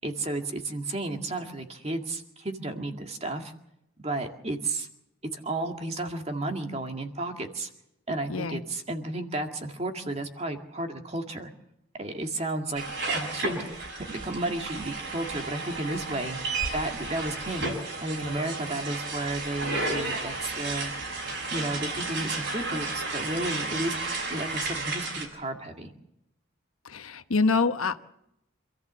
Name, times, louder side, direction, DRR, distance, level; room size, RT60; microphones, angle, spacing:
voice 1, 0.0-3.5 4.0-4.9 5.3-7.7 8.1-11.5 11.9-16.4 16.7-17.7 18.0-20.9 21.5-24.0 24.3-25.9, right 2 dB, 30° right, 4 dB, 2.1 m, -33 dB
voice 2, 8.3-8.6 26.9-28.0, left 4 dB, 85° left, 9 dB, 1.1 m, -25 dB
sound 1, 12.7-25.3, right 3 dB, 60° right, 6.8 m, -33 dB
27.0 x 14.5 x 7.5 m, 0.82 s
head